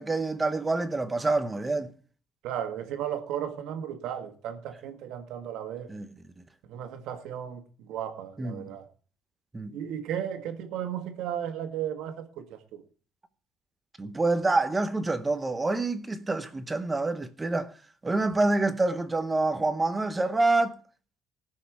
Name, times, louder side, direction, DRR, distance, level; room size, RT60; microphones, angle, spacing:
voice 1, 0.0-1.9 5.9-6.1 8.4-8.7 9.5-9.8 14.0-17.7 18.0-20.8, right 2 dB, 15° right, 0.8 m, -27 dB
voice 2, 2.4-5.9 6.6-8.9 9.7-12.8, right 9 dB, 75° right, 1.7 m, -35 dB
19.0 x 6.4 x 4.8 m
cardioid pair, 155°, 0 cm